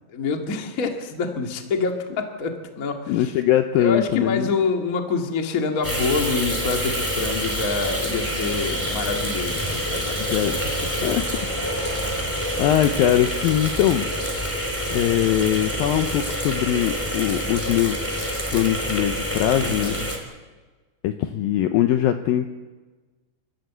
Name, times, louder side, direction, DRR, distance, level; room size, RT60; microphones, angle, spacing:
voice 1, 0.1-3.3 3.7-10.3 10.6-11.1 19.6-20.1, left 4 dB, 40° left, 4 dB, 1.3 m, -26 dB
voice 2, 3.1-4.5 10.2-10.5 11.0-11.3 12.6-14.1 14.9-18.0 18.5-20.0 21.0-22.6, left 12 dB, 75° left, 8 dB, 2.2 m, -21 dB
sound 1, 5.8-20.2, equal, 5° left, 2.8 m, -27 dB
30.0 x 13.0 x 8.3 m, 1.3 s
omnidirectional pair, 4.9 m